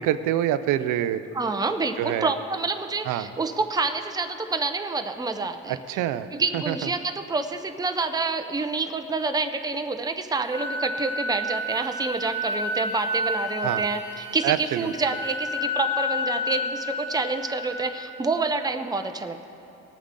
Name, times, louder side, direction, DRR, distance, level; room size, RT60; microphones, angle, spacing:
voice 1, 0.0-1.2 2.0-2.3 3.1-3.3 5.7-6.3 6.5-6.9 13.6-13.8 14.4-14.9, right 11 dB, 90° right, 12 dB, 0.5 m, -26 dB
voice 2, 1.3-5.8 6.3-19.5, right 3 dB, 15° right, 7 dB, 0.6 m, -28 dB
Wind instrument woodwind instrument, 10.5-18.2, left 2 dB, 20° left, 2.1 m, -30 dB
19.5 x 9.0 x 3.7 m, 2.9 s
cardioid pair, 90°, 30 cm